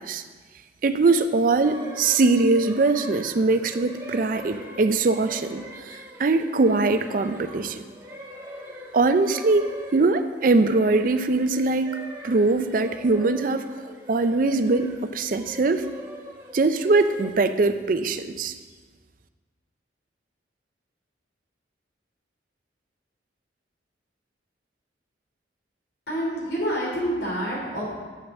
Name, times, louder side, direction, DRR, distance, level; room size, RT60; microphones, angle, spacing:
voice 1, 0.8-7.8 8.9-13.7 14.1-15.9 16.5-18.5, right 3 dB, 45° right, 10 dB, 0.4 m, -22 dB
sound 1, 1.6-17.3, equal, 15° right, 1.0 m, -41 dB
voice 2, 26.1-27.9, equal, 65° left, -4 dB, 3.1 m, -27 dB
7.7 x 6.4 x 6.0 m, 1.4 s
head